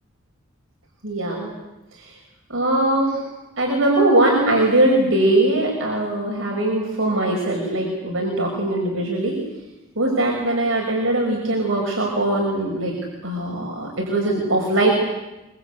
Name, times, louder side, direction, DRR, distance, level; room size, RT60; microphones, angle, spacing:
voice 1, 1.0-1.5 2.0-2.1 2.5-3.2 3.6-9.4 10.0-12.9 13.2-14.9, right 1 dB, 70° right, -1 dB, 6.1 m, -21 dB
25.5 x 24.5 x 8.3 m, 1.0 s
head